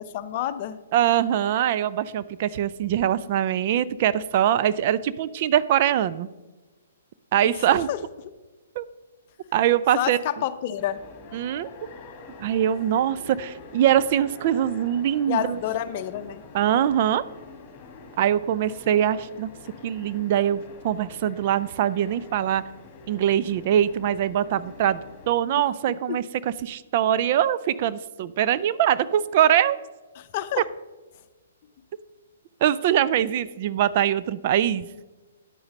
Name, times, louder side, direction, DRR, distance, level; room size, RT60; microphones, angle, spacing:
voice 1, 0.1-0.8 7.4-7.6 7.9-8.0 9.9-11.0 15.3-16.4 25.5-25.6 26.1-26.2 30.1-30.6, left 11 dB, 45° left, 12 dB, 0.6 m, -29 dB
voice 2, 0.9-6.3 7.3-7.9 8.8-8.9 9.5-10.2 11.3-11.7 12.4-15.6 16.5-17.2 18.2-19.5 19.8-22.6 23.1-26.2 26.6-29.8 32.6-34.9, right 10 dB, 45° right, 15 dB, 0.4 m, -23 dB
sound 1, 10.8-25.4, left 3 dB, 30° left, 2.1 m, -46 dB
9.9 x 8.8 x 4.1 m, 1.2 s
hypercardioid pair, 130°, 0 cm